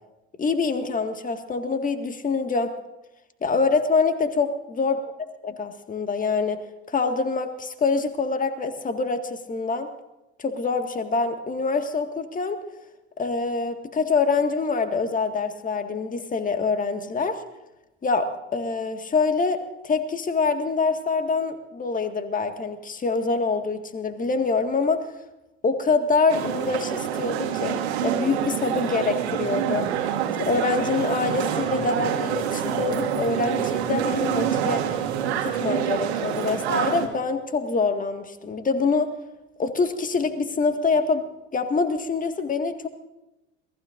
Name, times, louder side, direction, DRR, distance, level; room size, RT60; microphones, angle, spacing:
voice 1, 0.4-2.7 3.4-5.1 5.4-6.6 6.9-9.9 10.4-12.6 13.2-17.4 18.0-25.1 25.6-29.9 30.4-34.8 35.4-39.1 39.6-42.9, left 4 dB, 25° left, 7 dB, 1.9 m, -25 dB
sound 1, 26.3-37.1, right 9 dB, 70° right, 2.0 m, -26 dB
28.0 x 19.5 x 2.6 m, 0.99 s
figure-of-eight pair, 65°, 34 cm